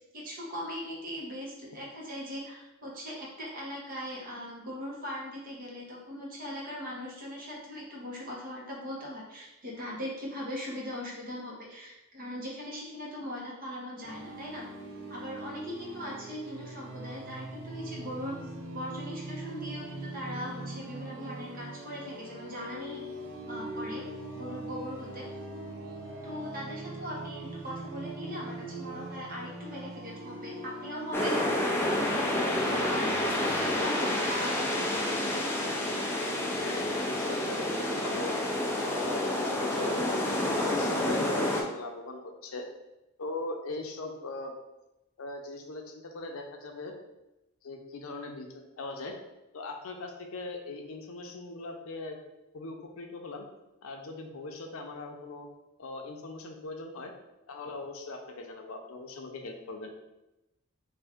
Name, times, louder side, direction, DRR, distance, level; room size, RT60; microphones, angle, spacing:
voice 1, 0.1-14.6 15.1-18.4 18.7-23.0 23.4-24.1 24.3-25.3 26.2-31.3 32.5-35.1, equal, 45° right, -3 dB, 1.0 m, -40 dB
sound 1, 14.0-33.8, right 1 dB, 65° right, 0.6 m, -41 dB
sound 2, 31.1-41.6, left 1 dB, 10° left, 0.4 m, -29 dB
voice 2, 36.6-37.6 38.0-38.4 38.8-40.2 40.6-42.7 43.2-44.6 45.2-46.9 47.6-49.2 49.5-52.2 52.5-53.4 53.8-55.5 55.8-57.1 57.5-59.9, left 2 dB, 80° left, 3 dB, 0.6 m, -40 dB
3.6 x 2.6 x 3.5 m, 0.95 s
head